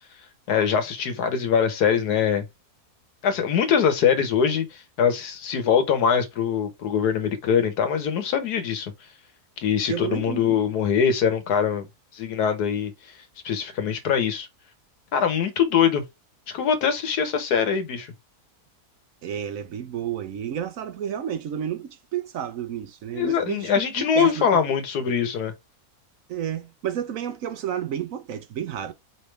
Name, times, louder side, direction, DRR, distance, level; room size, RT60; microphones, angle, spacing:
voice 1, 0.5-2.5 3.2-8.9 9.6-11.9 12.1-12.9 13.4-14.5 15.1-16.0 16.5-18.1 23.1-25.5, left 7 dB, 85° left, 1.5 m, -23 dB
voice 2, 9.9-10.6 19.2-24.5 26.3-28.9, right 9 dB, 65° right, 1.0 m, -31 dB
4.9 x 3.4 x 3.2 m
omnidirectional pair, 1.6 m